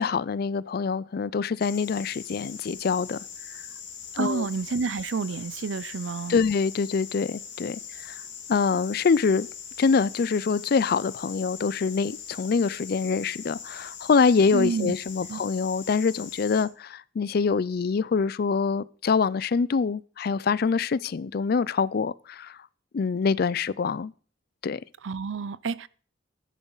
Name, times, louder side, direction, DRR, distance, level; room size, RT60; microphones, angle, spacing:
voice 1, 0.0-3.2 4.1-4.5 6.3-8.2 8.5-9.5 9.8-22.6 22.9-24.1 24.6-24.8, left 5 dB, 55° left, 0.4 m, -25 dB
sound 1, 1.6-16.6, left 7 dB, 70° left, 2.5 m, -41 dB
voice 2, 4.2-6.4 14.5-14.9 15.3-15.4 25.0-25.9, right 4 dB, 80° right, 0.5 m, -29 dB
12.5 x 10.0 x 4.0 m
head